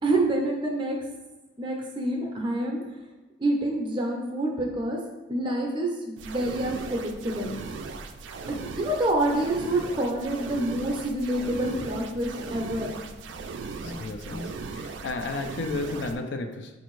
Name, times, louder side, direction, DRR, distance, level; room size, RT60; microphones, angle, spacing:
voice 1, 0.0-1.0 1.6-2.8 3.4-5.0 5.3-7.5 8.5-12.9 13.8-14.1 14.3-14.5, right 1 dB, 25° right, 1 dB, 0.5 m, -27 dB
sound 1, 6.2-16.2, right 4 dB, 80° right, 0.3 m, -38 dB
voice 2, 13.8-14.4 14.8-16.7, left 3 dB, 65° left, 5 dB, 0.4 m, -32 dB
4.2 x 2.6 x 3.1 m, 1.1 s
head